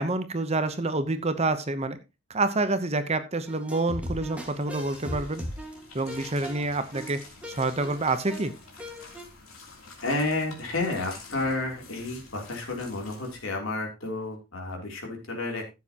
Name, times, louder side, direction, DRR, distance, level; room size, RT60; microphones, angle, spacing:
voice 1, 0.0-2.0 2.3-5.4 5.9-7.2 7.5-8.5, right 2 dB, 30° right, 10 dB, 0.8 m, -27 dB
sound 1, 3.5-9.2, equal, 5° right, 1.7 m, -38 dB
sound 2, 4.3-13.4, left 3 dB, 85° left, 3.0 m, -48 dB
voice 2, 10.0-15.6, left 2 dB, 70° left, 1 dB, 3.2 m, -31 dB
14.0 x 7.4 x 2.9 m, 0.27 s
head